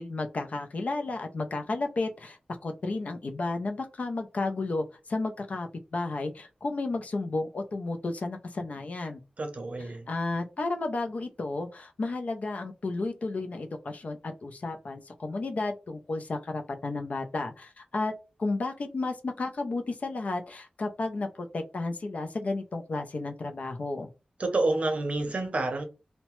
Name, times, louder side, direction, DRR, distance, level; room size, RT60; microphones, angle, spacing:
voice 1, 0.0-9.2 9.8-18.1 18.4-24.1, left 3 dB, 60° left, 0.5 m, -32 dB
voice 2, 9.4-10.1 24.4-25.8, right 2 dB, 55° right, 0.6 m, -28 dB
2.8 x 2.1 x 3.0 m
wide cardioid pair, 85°, 3 cm